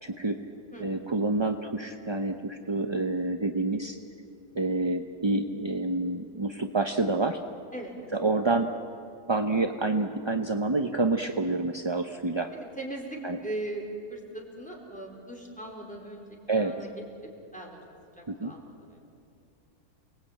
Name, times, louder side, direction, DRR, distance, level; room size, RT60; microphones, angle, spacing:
voice 1, 0.0-0.4 0.8-4.0 4.5-7.4 8.1-8.7 9.3-12.5 13.2-13.4 16.5-16.7 18.3-18.5, right 2 dB, 25° right, 5 dB, 0.6 m, -28 dB
voice 2, 12.5-16.9 17.5-17.8 18.2-19.0, right 1 dB, 5° left, -1 dB, 4.1 m, -39 dB
29.0 x 20.0 x 8.9 m, 2.6 s
omnidirectional pair, 1.6 m